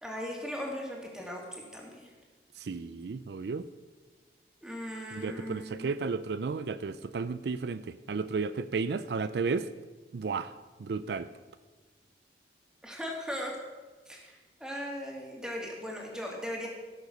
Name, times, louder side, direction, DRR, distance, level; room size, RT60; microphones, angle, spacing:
voice 1, 0.0-2.1 4.6-5.9 12.8-13.5 14.1-16.7, equal, 5° right, -1 dB, 2.3 m, -38 dB
voice 2, 2.6-3.7 5.1-9.7 10.1-10.5 10.8-11.3, right 4 dB, 70° right, 13 dB, 0.4 m, -33 dB
16.0 x 6.7 x 6.5 m, 1.3 s
head